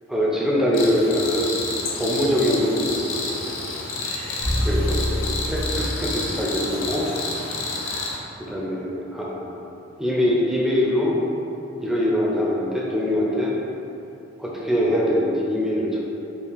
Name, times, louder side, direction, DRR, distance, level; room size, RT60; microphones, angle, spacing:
voice 1, 0.1-1.5 2.0-3.6 4.6-7.1 8.4-9.6 10.0-11.2 11.8-13.6 14.4-16.0, equal, ahead, -5 dB, 0.5 m, -23 dB
Cricket, 0.7-8.2, left 3 dB, 80° left, 0.5 m, -30 dB
sound 1, 4.4-6.5, equal, 70° right, 0.9 m, -26 dB
4.7 x 2.3 x 3.5 m, 2.8 s
head